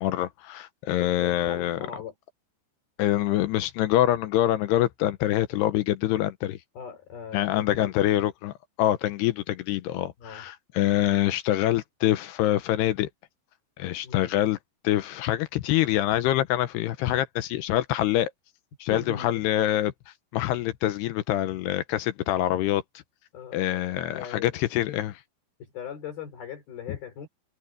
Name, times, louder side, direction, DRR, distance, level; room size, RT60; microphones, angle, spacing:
voice 1, 0.0-1.8 3.0-6.6 7.3-13.1 13.8-14.6 14.8-18.3 18.8-19.9 20.3-22.8 23.5-25.2, left 13 dB, 80° left, 2.7 m, -25 dB
voice 2, 1.0-2.1 6.8-7.9 10.2-10.5 14.0-14.3 18.9-19.4 23.3-24.5 25.6-27.3, left 7 dB, 60° left, 5.3 m, -40 dB
omnidirectional pair, 5.1 m